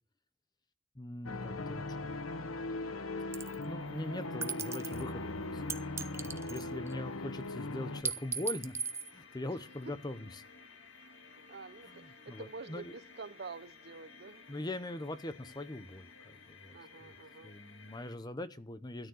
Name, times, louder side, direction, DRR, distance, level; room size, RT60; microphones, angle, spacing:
voice 1, 0.9-2.1 3.6-5.8 6.2-8.8 9.1-10.4 11.9-13.0 14.5-17.1 17.4-19.1, left 1 dB, 20° left, 0.9 m, -42 dB
sound 1, 1.2-8.0, left 2 dB, 90° left, 1.1 m, -39 dB
sound 2, 3.3-3.6 4.4-5.0 5.7-6.9 8.0-9.1, right 5 dB, 15° right, 0.7 m, -37 dB
sound 3, 3.6-18.2, left 4 dB, 60° left, 2.2 m, -55 dB
voice 2, 6.3-6.9 9.9-10.0 11.5-14.4 16.7-17.5, right 4 dB, 50° right, 0.6 m, -48 dB
13.5 x 9.4 x 6.4 m
head